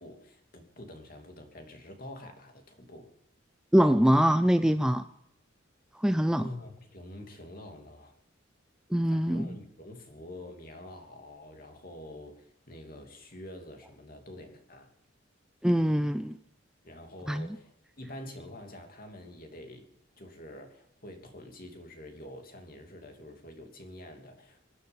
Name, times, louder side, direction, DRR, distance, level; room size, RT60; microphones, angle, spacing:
voice 1, 0.0-3.1 6.4-8.2 9.1-14.9 16.8-17.7 18.0-24.7, left 1 dB, 45° left, 4 dB, 2.9 m, -46 dB
voice 2, 3.7-5.0 6.0-6.5 8.9-9.6 15.6-16.4 17.3-17.5, equal, 5° right, 10 dB, 0.5 m, -23 dB
24.0 x 9.4 x 5.4 m, 0.77 s
head